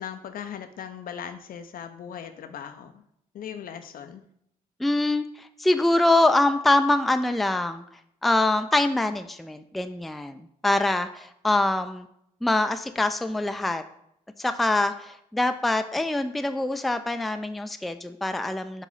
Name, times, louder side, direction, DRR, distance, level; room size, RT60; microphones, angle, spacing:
voice 1, 0.0-3.0 3.3-4.2, left 8 dB, 60° left, 9 dB, 0.5 m, -38 dB
voice 2, 4.8-7.8 8.2-12.1 12.4-13.8 14.4-18.9, left 2 dB, ahead, 9 dB, 0.3 m, -24 dB
4.8 x 2.7 x 3.9 m, 0.75 s
supercardioid pair, 50°, 16 cm